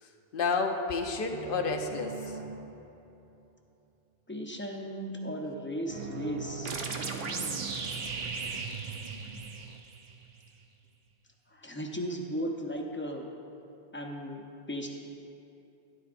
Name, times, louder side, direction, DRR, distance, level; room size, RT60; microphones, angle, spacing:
voice 1, 0.0-2.4, left 4 dB, 60° left, 4 dB, 0.9 m, -31 dB
sound 1, 1.3-3.5 5.9-10.9, right 6 dB, 55° right, 0.5 m, -42 dB
voice 2, 4.3-7.8 11.5-13.3 13.9-14.4 14.7-14.9, equal, 15° left, 1 dB, 0.6 m, -36 dB
sound 2, 6.7-10.1, right 4 dB, 70° right, 1.0 m, -37 dB
12.0 x 10.5 x 2.5 m, 2.7 s
omnidirectional pair, 1.1 m